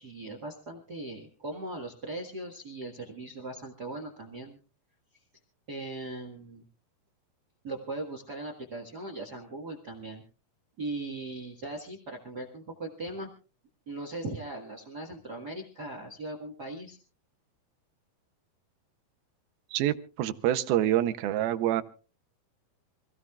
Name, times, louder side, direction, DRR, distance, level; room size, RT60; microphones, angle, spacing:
voice 1, 0.0-4.6 5.7-6.6 7.6-10.2 10.8-13.3 13.9-17.0, right 2 dB, 40° right, 3 dB, 1.4 m, -39 dB
voice 2, 19.7-21.8, right 12 dB, 85° right, 10 dB, 2.7 m, -26 dB
26.5 x 16.0 x 2.4 m, 0.36 s
omnidirectional pair, 4.3 m